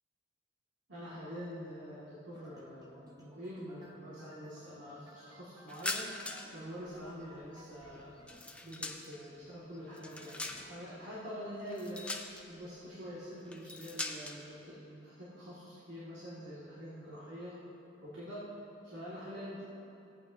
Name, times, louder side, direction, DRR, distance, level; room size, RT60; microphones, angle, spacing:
voice 1, 0.9-8.1 8.6-17.6 18.0-18.5 18.8-19.6, equal, 70° right, -9 dB, 2.1 m, -45 dB
sound 1, 2.3-8.5, equal, 20° right, 0.9 m, -60 dB
sound 2, 5.7-6.6 6.9-9.3 9.7-10.9 11.7-12.6 13.5-14.4, left 2 dB, 5° left, 0.4 m, -41 dB
16.0 x 8.7 x 2.7 m, 2.8 s
head